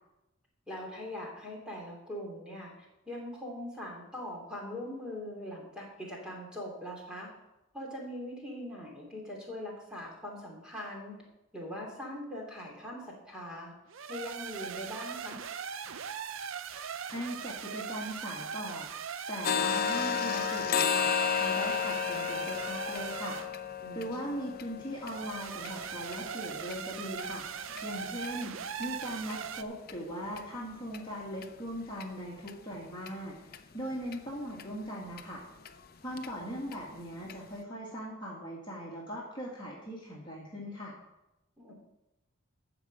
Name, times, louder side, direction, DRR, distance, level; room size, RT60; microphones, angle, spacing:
voice 1, 0.7-2.7 3.1-7.3 7.7-11.2 11.5-13.7 14.1-15.4 23.8-24.5 41.6-41.7, left 1 dB, 5° right, -2 dB, 2.6 m, -41 dB
sound 1, 13.9-23.5 25.0-29.6, right 7 dB, 65° right, 0.5 m, -40 dB
voice 2, 17.1-18.9 19.3-23.4 23.9-27.4 27.8-35.4 36.0-40.9, equal, 20° left, -4 dB, 2.1 m, -40 dB
sound 2, 19.4-27.2 27.7-27.8 28.2-28.4 28.8-28.9 29.3-29.4 29.9-30.0 30.4-30.5 30.9-31.0 31.4-31.5 32.0-32.1 32.5-32.6 33.1-33.2 33.5-33.6 34.1-34.2 34.6-34.7 35.2-35.3 35.7-35.8 36.2-36.3 36.7-36.8 37.3-37.4, left 7 dB, 45° left, 0.6 m, -33 dB
12.5 x 5.1 x 7.5 m, 0.95 s
head